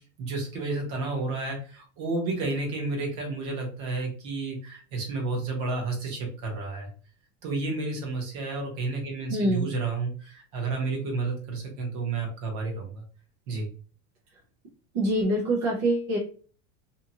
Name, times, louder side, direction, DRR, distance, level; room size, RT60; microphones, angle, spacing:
voice 1, 0.2-6.9 7.4-13.0 13.5-13.7, right 3 dB, 40° right, 1 dB, 1.0 m, -31 dB
voice 2, 9.3-9.7 14.9-16.2, right 1 dB, 25° right, -4 dB, 0.3 m, -25 dB
2.8 x 2.3 x 2.7 m, 0.40 s
supercardioid pair, 180°, 39 cm